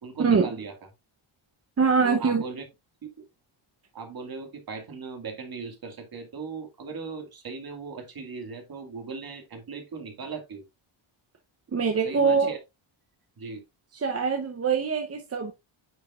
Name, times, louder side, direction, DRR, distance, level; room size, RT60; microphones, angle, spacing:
voice 1, 0.0-0.7 2.0-2.6 3.0-3.1 3.9-10.6 12.0-12.6 13.4-13.6, right 5 dB, 45° right, 2.1 m, -38 dB
voice 2, 1.8-2.4 11.7-12.5 13.9-15.5, right 5 dB, 30° right, 0.8 m, -23 dB
9.6 x 5.2 x 2.4 m
wide cardioid pair, 165°, 50 cm